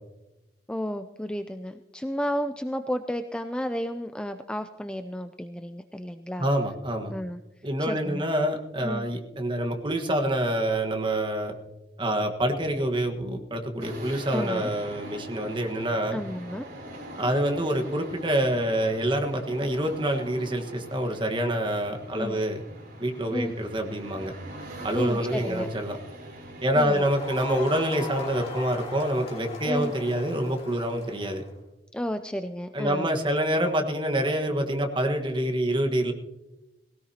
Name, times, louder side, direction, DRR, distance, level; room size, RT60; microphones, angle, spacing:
voice 1, 0.7-6.5 7.1-7.4 7.8-8.2 8.8-9.1 14.3-14.7 16.1-16.7 22.1-22.4 23.3-23.5 24.9-25.7 26.7-27.0 29.6-29.9 31.9-33.1, equal, 5° left, 7 dB, 0.4 m, -32 dB
voice 2, 6.4-7.1 7.6-11.5 12.0-16.2 17.1-22.6 23.0-24.3 24.8-26.0 26.6-31.4 32.7-36.1, right 1 dB, 30° right, 4 dB, 1.4 m, -26 dB
sound 1, 13.8-28.5, right 1 dB, 60° right, 4.2 m, -43 dB
Crowd, 26.7-31.5, left 3 dB, 35° left, 3.2 m, -40 dB
19.0 x 17.0 x 2.9 m, 1.0 s
head